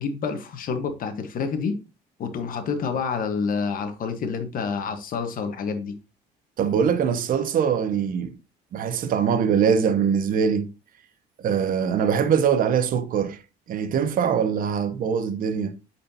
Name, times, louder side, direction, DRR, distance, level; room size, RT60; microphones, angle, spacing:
voice 1, 0.0-1.8 2.2-5.9, left 5 dB, 55° left, 1.2 m, -28 dB
voice 2, 6.6-8.4 8.7-10.7 11.4-13.4 13.7-15.8, right 7 dB, 55° right, 0.8 m, -22 dB
8.6 x 4.3 x 2.7 m
cardioid pair, 110°, 17 cm